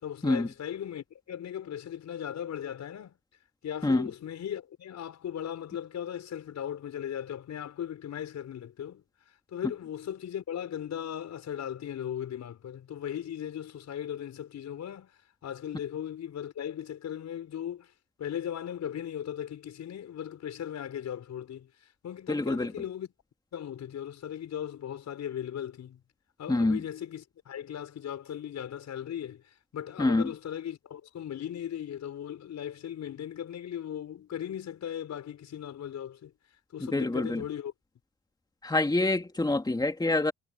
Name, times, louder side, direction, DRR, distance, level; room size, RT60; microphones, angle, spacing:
voice 1, 0.0-3.2 3.6-17.9 18.2-23.1 23.5-26.0 26.4-36.3 36.7-37.7, left 9 dB, 65° left, 6.2 m, -38 dB
voice 2, 22.3-22.7 26.5-26.8 30.0-30.2 36.9-37.4 38.6-40.3, left 2 dB, 15° left, 2.7 m, -26 dB
cardioid pair, 90°, 30 cm